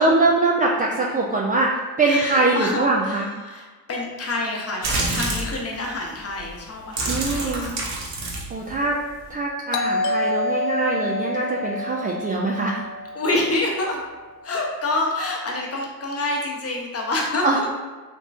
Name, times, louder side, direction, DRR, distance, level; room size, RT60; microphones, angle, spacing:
voice 1, 0.0-3.3 7.1-7.7 8.5-9.0 9.3-12.8 17.4-17.6, right 2 dB, 20° right, -3 dB, 0.3 m, -22 dB
voice 2, 2.1-7.8 13.1-14.0 14.4-17.7, left 2 dB, 30° left, -1 dB, 0.9 m, -27 dB
sound 1, 4.8-5.6 6.3-6.5 6.8-9.3, right 2 dB, 55° right, 1.1 m, -27 dB
Doorbell, 9.7-14.3, left 2 dB, 75° left, 0.6 m, -28 dB
3.6 x 2.9 x 2.5 m, 1.3 s
hypercardioid pair, 60°, 48 cm